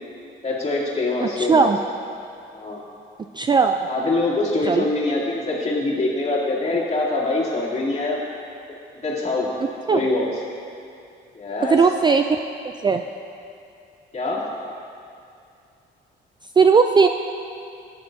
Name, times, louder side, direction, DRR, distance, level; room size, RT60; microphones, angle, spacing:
voice 1, 0.4-1.7 2.5-2.8 3.9-8.2 8.7-8.8 9.0-9.5 9.9-10.3 11.3-11.8 14.1-14.5, left 2 dB, 35° left, -6 dB, 2.7 m, -24 dB
voice 2, 1.2-1.8 3.3-3.8 4.7-4.9 9.9-10.0 11.7-12.4 12.8-13.0 16.6-17.1, right 5 dB, 25° right, 6 dB, 0.3 m, -17 dB
14.0 x 9.5 x 2.7 m, 2.5 s
cardioid pair, 90°, 20 cm